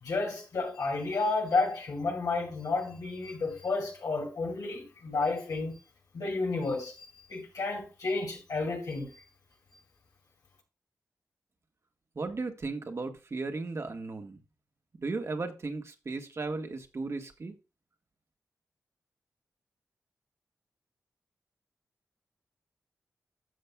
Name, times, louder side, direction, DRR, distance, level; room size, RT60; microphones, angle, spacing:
voice 1, 0.0-5.8 6.1-9.2, left 3 dB, 85° left, 2.5 m, -31 dB
voice 2, 12.1-14.4 15.0-17.5, right 3 dB, 50° right, 1.4 m, -35 dB
12.5 x 6.7 x 2.3 m
cardioid pair, 65°, 6 cm